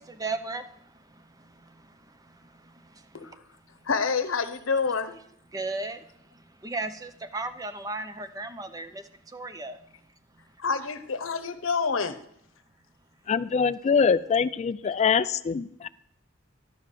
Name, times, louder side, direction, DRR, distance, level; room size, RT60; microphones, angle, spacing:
voice 1, 0.2-0.6 5.5-6.0 6.6-8.9 9.3-9.8, right 3 dB, 20° right, 0.6 m, -34 dB
voice 2, 3.8-5.2 10.6-12.2, left 5 dB, 90° left, 0.9 m, -27 dB
voice 3, 13.3-15.9, left 6 dB, 35° left, 0.3 m, -24 dB
12.0 x 5.5 x 6.7 m
head